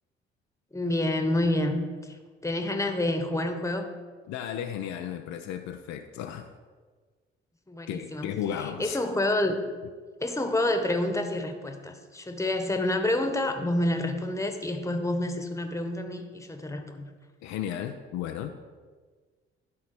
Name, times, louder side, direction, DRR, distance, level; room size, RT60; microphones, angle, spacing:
voice 1, 0.7-2.2 2.4-3.9 7.7-8.3 8.8-9.6 10.2-17.1, left 1 dB, 10° left, 6 dB, 1.4 m, -28 dB
voice 2, 4.3-6.5 7.9-9.0 17.4-18.6, left 9 dB, 60° left, 5 dB, 0.7 m, -34 dB
12.0 x 4.1 x 6.1 m, 1.5 s
hypercardioid pair, 50°, 31 cm